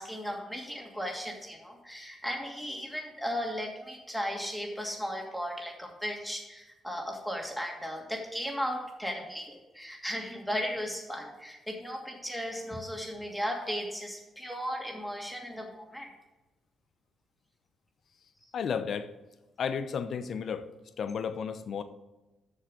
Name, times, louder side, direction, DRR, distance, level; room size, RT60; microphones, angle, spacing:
voice 1, 0.0-16.1, equal, ahead, 0 dB, 2.5 m, -36 dB
voice 2, 18.5-19.1 19.6-20.7 21.0-21.8, left 6 dB, 60° left, 10 dB, 0.8 m, -33 dB
7.3 x 6.6 x 6.4 m, 1.1 s
cardioid pair, 70°, 0 cm